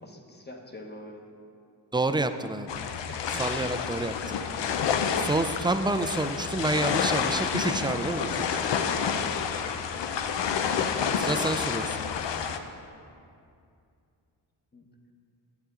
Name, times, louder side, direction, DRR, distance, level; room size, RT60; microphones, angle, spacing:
voice 1, 0.0-1.2 3.1-4.2 14.7-14.8, left 1 dB, 25° left, 1 dB, 1.0 m, -45 dB
voice 2, 1.9-2.7 3.4-4.4 5.2-8.6 11.2-12.0, right 2 dB, 10° right, 9 dB, 0.3 m, -28 dB
sound 1, 2.7-12.6, left 7 dB, 85° left, 0.6 m, -29 dB
10.5 x 7.8 x 3.7 m, 2.4 s
cardioid pair, 80°, 42 cm